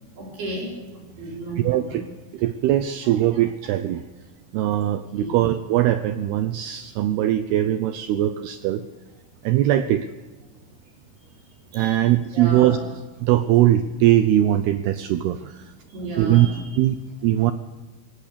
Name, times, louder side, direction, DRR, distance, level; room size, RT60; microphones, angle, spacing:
voice 1, 0.2-2.0 5.2-5.4 11.7-12.0 12.3-12.8 15.9-16.6, right 2 dB, 55° right, -2 dB, 6.6 m, -33 dB
voice 2, 1.3-2.0 2.3-4.1 4.5-8.8 9.4-10.1 11.7-12.8 13.2-15.7 16.2-16.5 16.8-17.5, right 13 dB, 85° right, 11 dB, 2.3 m, -21 dB
25.0 x 17.5 x 6.9 m, 1.3 s
omnidirectional pair, 5.6 m